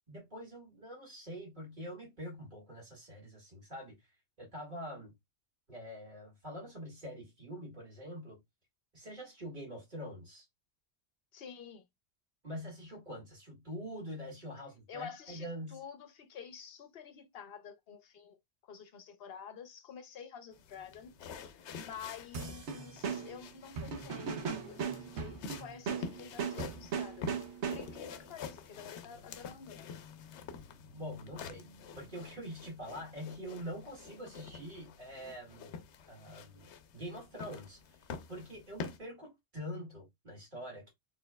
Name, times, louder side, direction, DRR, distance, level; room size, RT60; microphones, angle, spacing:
voice 1, 0.1-4.0 4.4-5.1 5.7-8.4 8.9-10.4 12.4-15.8 30.9-35.8 36.1-36.7 36.9-37.8 38.3-40.9, equal, 45° right, 2.1 m, -45 dB
voice 2, 11.3-11.8 14.9-18.4 18.7-27.3 27.7-29.9, left 7 dB, 65° left, 0.9 m, -49 dB
sound 1, 20.5-39.0, left 6 dB, 85° left, 0.9 m, -48 dB
sound 2, 22.3-28.1, right 6 dB, 80° right, 1.2 m, -38 dB
4.3 x 3.2 x 2.2 m
omnidirectional pair, 1.1 m